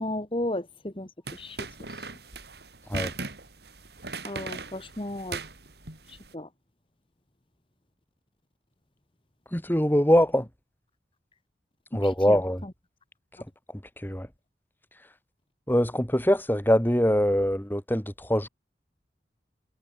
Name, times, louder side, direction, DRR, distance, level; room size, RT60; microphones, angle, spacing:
voice 1, 0.0-2.1 4.2-5.4 6.1-6.5 11.9-12.7, left 1 dB, 30° left, 1.4 m, -35 dB
sound 1, 1.3-6.3, right 3 dB, 65° right, 6.1 m, -38 dB
voice 2, 9.5-10.5 11.9-12.6 14.0-14.3 15.7-18.5, equal, 10° left, 2.7 m, -23 dB
head